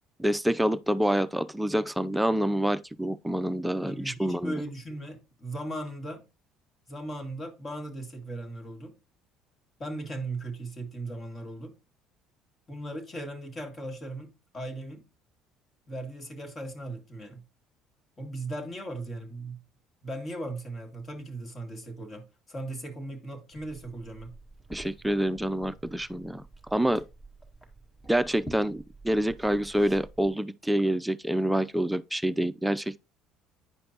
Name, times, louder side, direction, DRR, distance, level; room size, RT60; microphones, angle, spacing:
voice 1, 0.2-4.6 24.7-26.4 26.7-27.0 28.1-33.0, right 1 dB, 5° right, 0.5 m, -27 dB
voice 2, 3.8-6.2 6.9-8.9 9.8-11.8 12.7-15.0 15.9-17.4 18.2-19.6 20.0-24.3, right 1 dB, 35° left, 2.3 m, -38 dB
Liquid, 23.5-30.3, right 1 dB, 10° left, 1.9 m, -48 dB
9.7 x 5.2 x 2.9 m
supercardioid pair, 75°, 0 cm